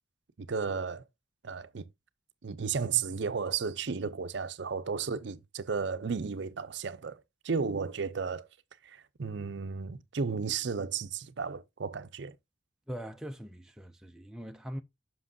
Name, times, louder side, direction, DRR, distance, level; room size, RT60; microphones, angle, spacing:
voice 1, 0.4-1.0 1.4-1.9 2.4-8.5 8.8-12.4, right 5 dB, 60° right, 0.5 m, -34 dB
voice 2, 12.9-14.8, equal, 5° right, 0.3 m, -41 dB
7.5 x 5.9 x 2.6 m
head